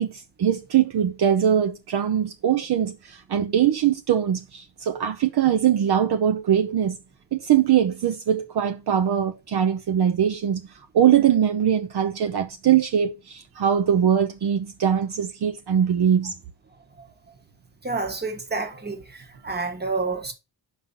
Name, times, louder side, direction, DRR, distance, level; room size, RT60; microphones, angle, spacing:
voice 1, 0.0-7.0 7.3-10.6 10.9-16.3, right 9 dB, 60° right, 0.8 m, -22 dB
voice 2, 17.8-19.0 19.4-20.3, right 3 dB, 20° right, 1.4 m, -28 dB
5.7 x 5.6 x 5.3 m
wide cardioid pair, 135°, 45 cm